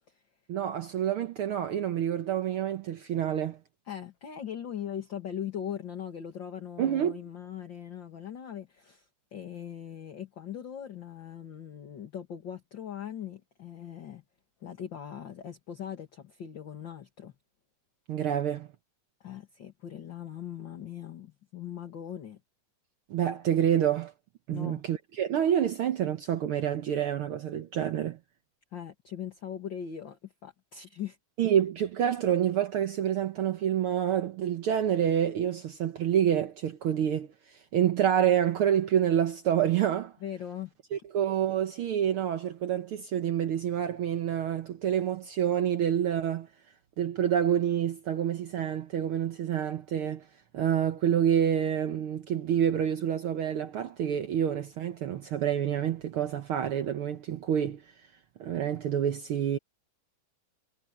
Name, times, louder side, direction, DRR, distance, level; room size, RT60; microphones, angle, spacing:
voice 1, 0.5-3.6 6.8-7.2 18.1-18.7 23.1-24.1 24.5-28.2 31.4-40.1 40.9-46.5 47.0-50.2 50.5-57.8 58.4-59.6, right 9 dB, 90° right, 1.2 m, -28 dB
voice 2, 3.9-14.2 14.6-17.3 19.2-22.4 24.5-24.8 28.7-31.2 40.2-40.7, left 9 dB, 40° left, 2.2 m, -40 dB
omnidirectional pair, 3.8 m